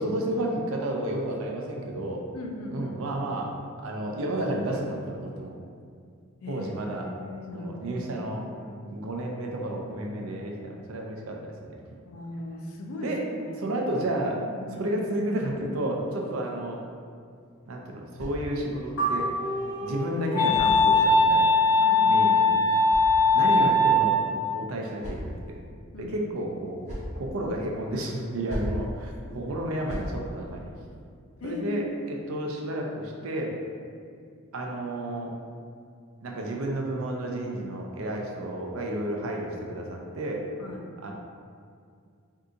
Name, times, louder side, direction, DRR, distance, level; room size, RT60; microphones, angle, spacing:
voice 1, 0.0-2.2 2.7-3.6 3.8-5.6 6.5-7.1 7.5-8.5 8.9-11.8 13.0-13.3 13.6-14.4 14.8-16.8 17.7-19.3 19.8-21.6 22.1-22.5 23.3-24.2 24.5-25.6 26.0-26.8 27.1-30.7 31.4-33.6 34.5-35.3 36.2-40.5 41.0-41.1, right 1 dB, 70° right, 0 dB, 0.5 m, -31 dB
voice 2, 2.3-2.9 6.4-6.7 7.0-8.8 12.0-13.6 14.4-14.9 21.8-22.6 25.9-26.3 31.4-31.9 40.6-40.8, left 2 dB, 85° left, 1 dB, 0.5 m, -38 dB
sound 1, 17.3-18.9 19.9-21.4 22.3-23.7 24.5-25.6 26.5-27.2 28.2-28.9 29.6-30.2, equal, 35° right, 1.0 m, -39 dB
sound 2, 19.0-20.3, right 3 dB, 65° left, 0.9 m, -30 dB
Wind instrument woodwind instrument, 19.0-24.4, left 2 dB, 20° left, 0.4 m, -21 dB
2.7 x 2.4 x 3.7 m, 2.2 s
head